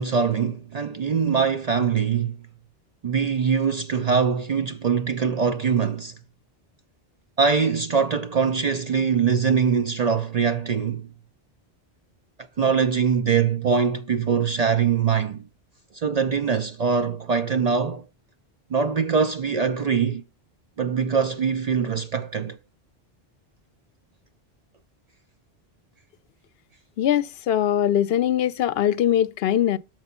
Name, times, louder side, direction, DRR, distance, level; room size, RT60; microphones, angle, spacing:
voice 1, 0.0-2.4 3.0-6.1 7.4-11.1 12.6-15.4 15.9-18.1 18.7-20.2 20.8-22.6, right 6 dB, 55° right, 0.5 m, -23 dB
voice 2, 27.0-29.8, left 10 dB, 70° left, 0.8 m, -21 dB
6.9 x 4.6 x 5.6 m
omnidirectional pair, 1.1 m